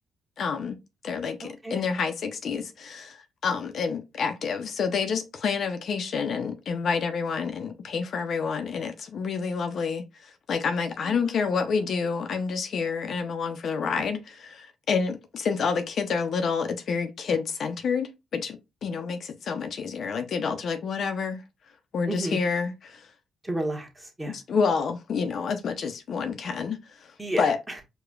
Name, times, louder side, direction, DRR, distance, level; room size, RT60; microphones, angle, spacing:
voice 1, 0.4-0.8 1.0-21.4 21.9-23.1 24.5-27.1 27.4-27.6, left 5 dB, 60° left, 0.5 m, -28 dB
voice 2, 1.4-1.8 11.0-11.6 22.1-22.4 23.4-24.4 27.2-27.8, right 1 dB, 10° right, 1.0 m, -33 dB
4.8 x 2.2 x 2.3 m
cardioid pair, 90°, 0 cm